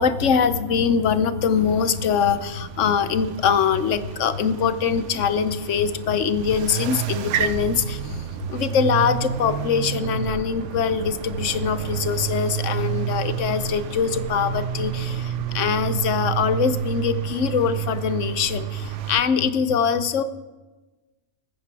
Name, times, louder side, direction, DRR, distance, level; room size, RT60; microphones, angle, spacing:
voice 1, 0.0-20.2, left 6 dB, 75° left, 12 dB, 1.1 m, -23 dB
sound 1, 1.5-19.2, right 11 dB, 70° right, 0.9 m, -30 dB
sound 2, 3.4-19.4, left 1 dB, 30° left, 1.8 m, -49 dB
20.5 x 9.3 x 4.7 m, 1.2 s
omnidirectional pair, 1.3 m